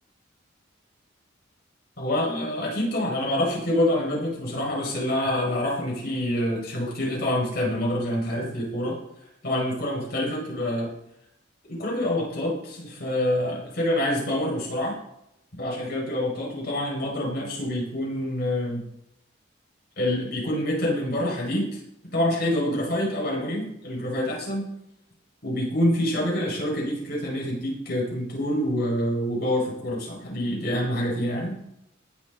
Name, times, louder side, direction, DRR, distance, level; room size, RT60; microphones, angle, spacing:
voice 1, 2.0-8.9 9.4-10.9 11.7-15.0 15.6-18.8 20.0-21.8 22.1-24.7 25.4-31.5, left 1 dB, 50° left, -3 dB, 5.0 m, -26 dB
19.0 x 6.3 x 3.8 m, 0.80 s
head